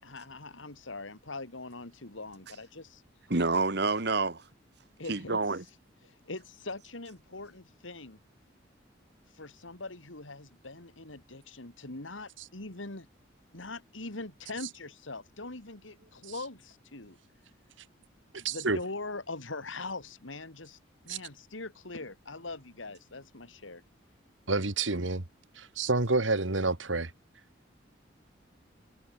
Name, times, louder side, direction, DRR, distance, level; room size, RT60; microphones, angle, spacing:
voice 1, 0.0-3.0 5.0-5.4 6.0-8.2 9.3-13.1 13.5-17.2 18.4-20.8 21.0-23.8, left 3 dB, 85° left, 3.1 m, -42 dB
voice 2, 3.3-4.4 5.1-5.6, right 3 dB, 55° right, 1.6 m, -28 dB
voice 3, 18.3-18.8 21.1-21.2 24.5-25.2 25.6-27.1, right 3 dB, 80° right, 2.3 m, -28 dB
head